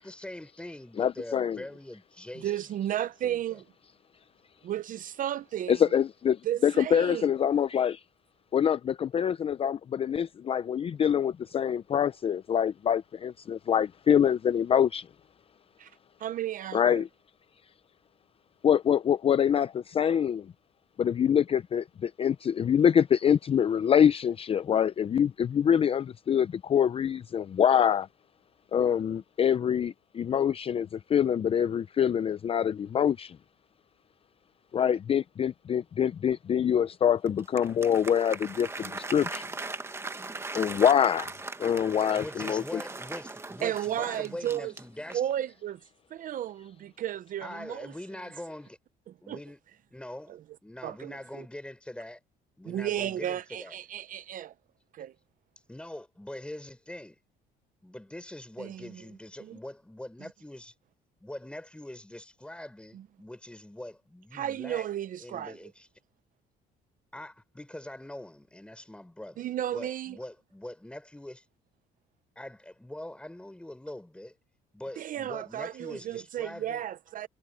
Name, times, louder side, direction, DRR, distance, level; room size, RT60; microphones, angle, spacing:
voice 1, 0.0-2.5 3.2-3.6 42.1-45.2 47.4-48.8 49.2-49.6 49.9-50.4 50.6-52.2 52.6-53.7 55.7-57.2 57.8-60.7 61.2-64.9 65.2-65.9 67.1-69.5 69.7-71.4 72.3-74.3 74.7-76.8, left 1 dB, 5° left, 4.9 m, -43 dB
voice 2, 1.0-1.6 5.7-8.0 8.5-15.1 16.7-17.1 18.6-20.5 21.0-28.1 28.7-33.4 34.7-39.4 40.5-41.3 41.6-42.8, left 8 dB, 35° left, 0.5 m, -25 dB
voice 3, 2.4-3.6 4.6-5.8 6.4-7.3 15.8-15.9 16.2-17.0 43.6-44.7 45.1-45.8 46.1-47.9 49.3-49.4 50.3-50.4 50.8-51.4 52.7-54.5 54.9-55.1 58.6-59.0 59.4-59.6 62.9-63.1 64.3-65.6 69.4-70.2 75.0-77.3, right 11 dB, 55° right, 0.7 m, -33 dB
Applause, 37.3-45.4, right 3 dB, 15° right, 1.3 m, -39 dB
cardioid pair, 110°, 17 cm